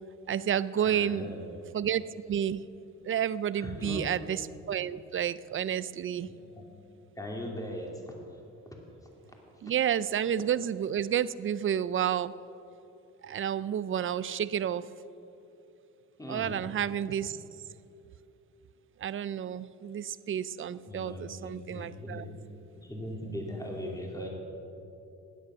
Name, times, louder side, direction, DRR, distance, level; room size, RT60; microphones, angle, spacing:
voice 1, 0.3-1.3 1.7-2.0 2.3-2.7 3.0-6.3 9.6-12.3 13.2-14.9 16.3-17.4 19.0-22.2, right 9 dB, 45° right, 17 dB, 0.5 m, -30 dB
voice 2, 0.8-1.4 3.6-4.1 6.3-6.6 7.2-8.2 16.2-16.6 20.9-22.3 22.7-24.3, equal, 10° left, 0 dB, 2.7 m, -39 dB
15.5 x 10.5 x 6.2 m, 2.9 s
cardioid pair, 90°, 30 cm